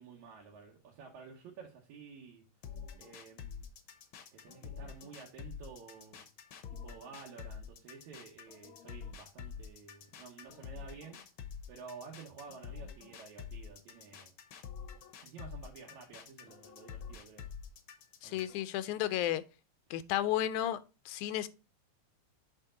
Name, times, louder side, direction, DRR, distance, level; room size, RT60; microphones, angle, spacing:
voice 1, 0.0-2.4 3.0-3.7 4.3-6.2 6.7-11.2 11.7-14.3 15.2-17.5 18.2-18.4, right 5 dB, 75° right, 2.4 m, -51 dB
sound 1, 2.6-18.6, left 7 dB, 65° left, 1.3 m, -47 dB
voice 2, 18.2-19.4 19.9-20.8 21.1-21.5, left 12 dB, 90° left, 2.1 m, -32 dB
7.2 x 4.6 x 3.7 m
omnidirectional pair, 3.4 m